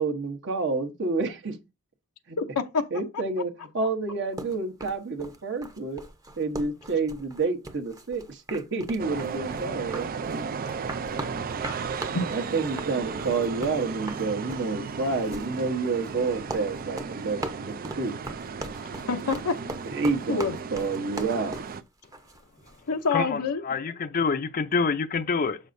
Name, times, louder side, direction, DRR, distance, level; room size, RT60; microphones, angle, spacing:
voice 1, 0.0-1.6 2.3-2.4 2.9-6.0 6.4-10.1 12.3-18.2 19.9-21.6, right 3 dB, 55° right, 1.1 m, -29 dB
voice 2, 2.4-2.9 12.1-12.3 18.9-19.6 20.3-20.5 22.9-23.6, left 4 dB, 75° left, 0.7 m, -27 dB
sound 1, 4.4-22.8, right 1 dB, 15° right, 0.8 m, -39 dB
sound 2, 9.0-21.8, right 5 dB, 40° right, 0.4 m, -35 dB
voice 3, 23.1-25.6, left 5 dB, 40° left, 0.5 m, -27 dB
7.5 x 6.4 x 2.6 m
head